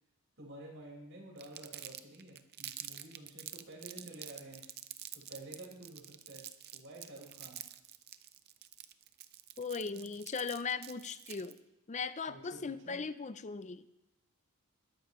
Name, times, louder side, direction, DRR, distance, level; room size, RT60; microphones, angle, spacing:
voice 1, 0.4-4.6 5.1-6.4 6.7-7.6 12.3-13.0, right 1 dB, 60° right, -2 dB, 4.9 m, -50 dB
Crumpling crinkling, 1.4-11.6, right 12 dB, 45° right, 0.6 m, -47 dB
voice 2, 9.6-11.6 11.9-13.8, left 5 dB, 30° left, 13 dB, 0.5 m, -38 dB
21.0 x 12.0 x 3.1 m, 0.96 s
head